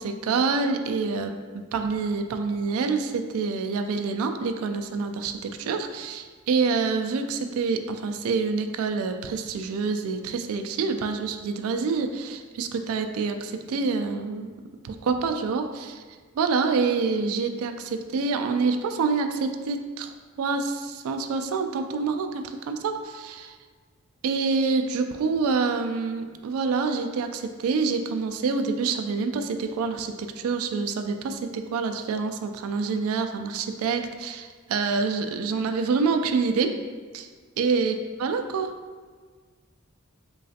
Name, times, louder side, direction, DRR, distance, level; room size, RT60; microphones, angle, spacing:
voice 1, 0.0-14.5 14.8-16.0 16.4-23.6 24.2-36.7 37.1-37.3 37.6-38.7, right 4 dB, 65° right, 8 dB, 0.3 m, -27 dB
3.8 x 3.2 x 2.7 m, 1.5 s
head